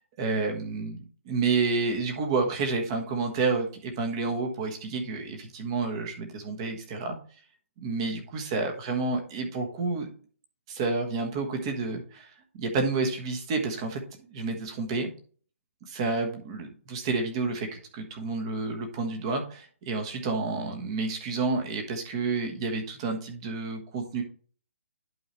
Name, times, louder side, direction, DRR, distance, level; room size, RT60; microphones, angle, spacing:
voice 1, 0.2-7.2 7.8-10.1 10.7-14.0 14.3-15.1 15.8-24.2, right 4 dB, 20° right, 4 dB, 1.3 m, -30 dB
11.0 x 4.8 x 3.1 m, 0.43 s
hypercardioid pair, 175°, 7 cm